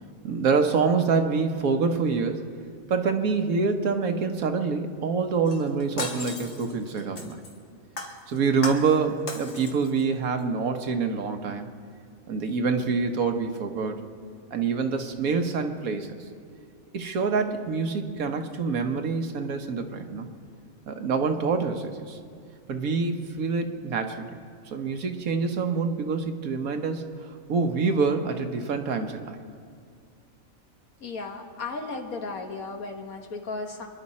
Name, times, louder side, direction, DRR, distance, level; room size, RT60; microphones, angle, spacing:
voice 1, 0.2-2.4 2.9-7.4 8.3-11.7 12.3-14.0 14.5-16.1 16.9-20.3 20.9-22.2 22.7-24.4 24.7-27.0 27.5-29.4, right 5 dB, 85° right, 5 dB, 1.5 m, -26 dB
Shatter, 5.5-7.6 8.0-9.0 9.3-10.0 10.4-10.5, left 3 dB, 55° left, 1.8 m, -36 dB
voice 2, 31.0-33.9, left 3 dB, 85° left, 3 dB, 1.9 m, -35 dB
27.5 x 11.0 x 4.2 m, 2.2 s
omnidirectional pair, 1.4 m